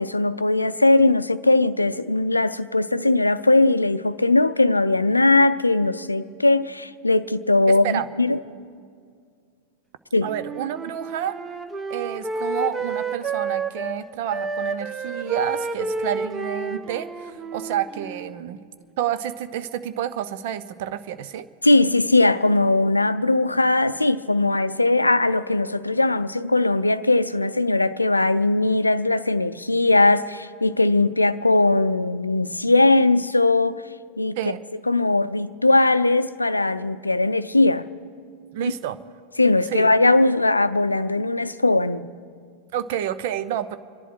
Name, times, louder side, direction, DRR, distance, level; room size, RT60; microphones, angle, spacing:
voice 1, 0.0-8.4 10.1-10.3 21.6-33.8 34.2-34.4 34.9-37.9 38.6-38.7 39.4-42.1, left 2 dB, 85° left, 0.5 m, -19 dB
voice 2, 7.7-8.1 10.2-11.4 11.9-18.6 19.0-21.5 34.4-34.6 38.5-39.0 39.7-39.9 42.7-43.8, right 10 dB, 50° right, 0.7 m, -29 dB
Wind instrument woodwind instrument, 10.2-14.0 14.3-18.4, right 3 dB, 15° right, 0.9 m, -30 dB
27.0 x 11.0 x 4.8 m
figure-of-eight pair, 90°, 0 cm